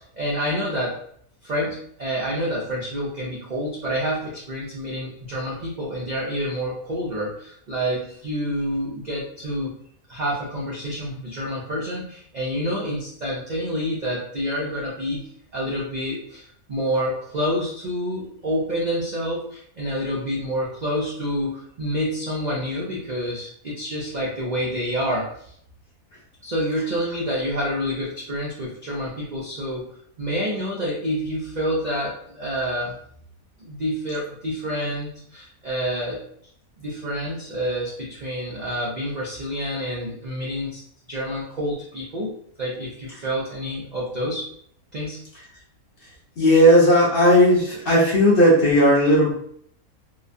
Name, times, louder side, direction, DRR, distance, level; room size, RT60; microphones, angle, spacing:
voice 1, 0.1-1.0 1.4-9.8 10.1-25.5 26.4-29.9 30.2-33.0 33.6-36.2 36.8-40.8 41.1-42.3 42.6-44.5 44.9-45.2, equal, 80° right, -4 dB, 0.4 m, -28 dB
voice 2, 46.4-49.3, equal, 50° left, -5 dB, 0.8 m, -15 dB
2.9 x 2.2 x 2.5 m, 0.65 s
omnidirectional pair, 1.5 m